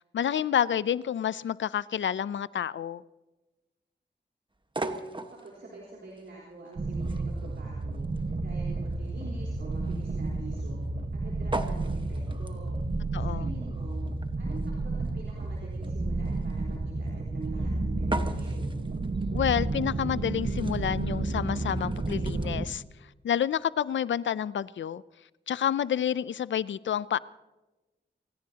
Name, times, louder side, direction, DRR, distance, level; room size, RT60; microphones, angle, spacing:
voice 1, 0.1-3.0 13.1-13.5 19.3-22.8 23.2-25.0 25.5-27.2, left 9 dB, 85° left, 0.4 m, -29 dB
sound 1, 4.6-22.5, right 2 dB, 25° right, 1.3 m, -41 dB
voice 2, 4.9-8.1 8.4-10.8 11.1-12.7 13.1-14.0 14.4-18.8, right 3 dB, 75° right, 3.9 m, -46 dB
sound 2, 6.8-22.7, right 2 dB, 50° right, 1.3 m, -31 dB
27.5 x 17.0 x 2.9 m
cardioid pair, 55°, 19 cm